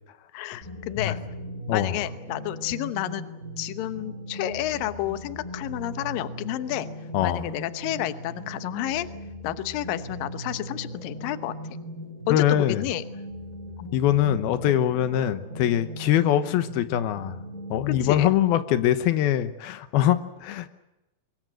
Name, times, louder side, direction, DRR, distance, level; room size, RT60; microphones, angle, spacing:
voice 1, 0.3-1.2 1.7-3.2 3.6-6.9 7.2-9.1 9.4-11.5 12.3-13.0 13.8-13.9 17.9-18.3, left 14 dB, 75° left, 12 dB, 2.7 m, -30 dB
sound 1, 0.6-18.2, equal, 20° right, 5.5 m, -38 dB
voice 2, 12.3-12.8 13.9-17.4 17.7-20.7, left 11 dB, 90° left, 12 dB, 3.0 m, -23 dB
23.5 x 23.0 x 7.8 m, 0.97 s
omnidirectional pair, 4.3 m